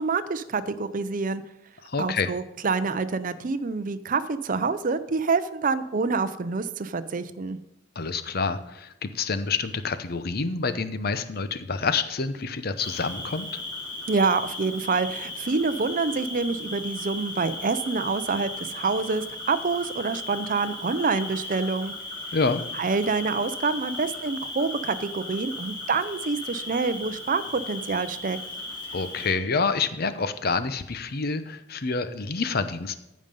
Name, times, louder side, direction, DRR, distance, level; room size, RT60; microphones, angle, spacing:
voice 1, 0.0-1.4 2.0-7.6 14.1-21.9 22.8-28.4, right 4 dB, 45° right, 13 dB, 0.5 m, -27 dB
voice 2, 1.8-2.3 8.0-13.6 22.3-22.6 28.9-33.0, left 4 dB, 50° left, 12 dB, 0.7 m, -27 dB
Cricket, 12.8-29.3, left 2 dB, 25° left, 2.7 m, -36 dB
14.5 x 5.3 x 5.3 m, 0.91 s
head